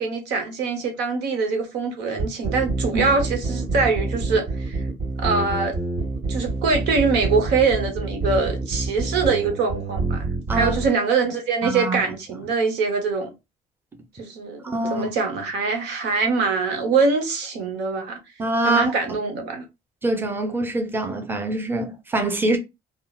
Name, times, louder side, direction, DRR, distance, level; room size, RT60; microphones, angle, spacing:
voice 1, 0.0-4.8 5.2-5.7 6.3-13.3 14.1-18.2 18.6-19.6, right 4 dB, 90° right, 1.0 m, -23 dB
sound 1, 2.2-10.9, right 3 dB, 55° right, 1.9 m, -26 dB
voice 2, 11.6-12.0 14.6-15.1 18.4-18.9 20.0-22.6, right 2 dB, 10° right, 0.7 m, -24 dB
3.7 x 2.0 x 2.3 m
cardioid pair, 110°, 17 cm